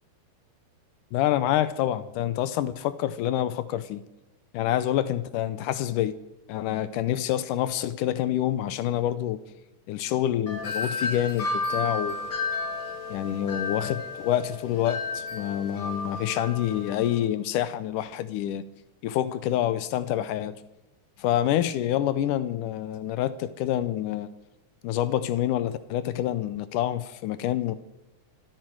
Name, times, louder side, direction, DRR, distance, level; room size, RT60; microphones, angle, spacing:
voice 1, 1.1-4.0 4.5-6.1 6.5-9.4 9.9-12.2 13.1-18.7 19.0-20.6 21.2-24.3 24.8-27.8, left 12 dB, 80° left, 2.3 m, -27 dB
Wind chime, 10.5-17.2, left 3 dB, 40° left, 2.8 m, -32 dB
24.0 x 12.5 x 4.7 m
omnidirectional pair, 3.7 m